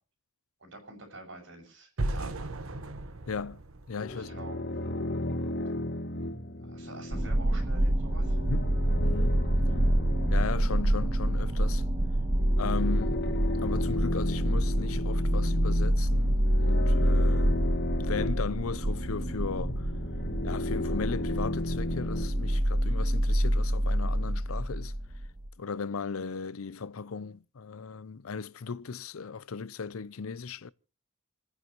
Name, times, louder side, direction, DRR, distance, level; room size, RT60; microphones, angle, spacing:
voice 1, 0.6-2.5 4.1-4.6 6.6-8.4, right 2 dB, 65° right, 6.4 m, -46 dB
sound 1, 2.0-5.0, right 2 dB, 80° right, 1.3 m, -36 dB
voice 2, 3.3-3.6 3.9-4.3 8.5-9.4 10.3-11.8 12.6-13.2 13.6-17.6 18.0-19.9 20.4-24.9 25.6-30.7, left 5 dB, 85° left, 0.6 m, -37 dB
sound 2, 4.0-22.6, left 1 dB, 55° left, 1.3 m, -35 dB
sound 3, 7.1-25.5, right 1 dB, 25° right, 0.7 m, -27 dB
29.0 x 9.8 x 3.1 m
head